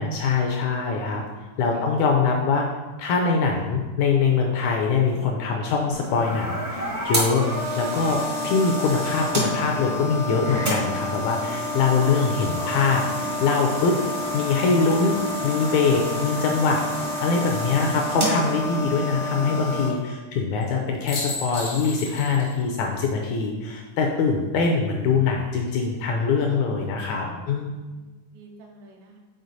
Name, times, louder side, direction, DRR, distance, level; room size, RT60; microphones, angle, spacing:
voice 1, 0.0-1.2 1.6-2.7 3.0-7.5 7.8-14.0 14.3-16.8 17.2-27.8, left 4 dB, 80° left, 1 dB, 1.7 m, -23 dB
voice 2, 1.0-1.9 27.2-29.2, right 3 dB, 85° right, 1 dB, 1.6 m, -49 dB
sound 1, 5.9-19.9, left 1 dB, 55° right, 0.5 m, -28 dB
sound 2, 12.1-15.4 17.2-17.8 20.6-20.7 21.1-22.6 22.9-23.0 25.4-25.9, left 2 dB, 65° left, 0.9 m, -38 dB
6.5 x 4.3 x 4.0 m, 1.2 s
omnidirectional pair, 3.9 m